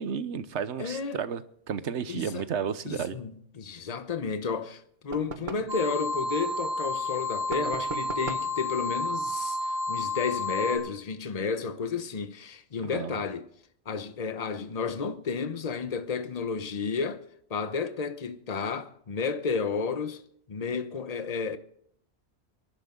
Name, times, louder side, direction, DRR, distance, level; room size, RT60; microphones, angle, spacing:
voice 1, 0.0-3.2 12.9-13.2, right 7 dB, 85° right, 1.2 m, -32 dB
voice 2, 0.8-1.2 2.1-2.4 2.8-13.5 13.9-17.2 17.5-20.2 20.5-21.6, left 5 dB, 35° left, 1.0 m, -32 dB
sound 1, 5.1-5.8 7.5-8.6, right 4 dB, 45° right, 1.2 m, -39 dB
sound 2, 5.7-10.8, left 2 dB, 20° right, 5.0 m, -31 dB
26.0 x 11.5 x 3.8 m
omnidirectional pair, 1.1 m